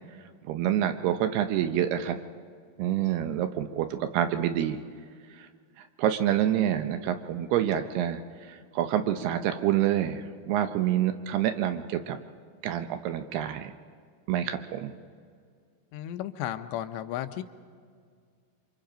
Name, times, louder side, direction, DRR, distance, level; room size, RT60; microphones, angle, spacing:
voice 1, 0.5-2.2 2.8-4.8 5.4-5.5 6.0-8.2 8.5-12.2 12.6-13.7 14.3-14.9, right 11 dB, 75° right, 8 dB, 2.7 m, -27 dB
voice 2, 15.9-17.4, left 12 dB, 85° left, 9 dB, 3.0 m, -34 dB
27.5 x 24.5 x 5.1 m, 2.1 s
omnidirectional pair, 5.0 m